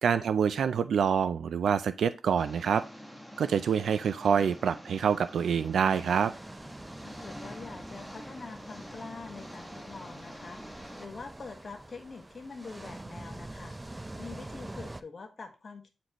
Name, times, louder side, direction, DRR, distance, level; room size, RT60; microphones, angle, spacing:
voice 1, 0.0-2.8 3.4-6.3, right 7 dB, 85° right, 12 dB, 0.4 m, -26 dB
Engine, 2.4-11.0, equal, ahead, 1.2 m, -47 dB
sound 1, 5.7-15.0, right 1 dB, 20° right, 0.5 m, -45 dB
voice 2, 7.0-13.8 14.2-15.9, left 4 dB, 50° left, 5 dB, 1.4 m, -45 dB
9.2 x 4.2 x 3.0 m, 0.30 s
cardioid pair, 70°, 0 cm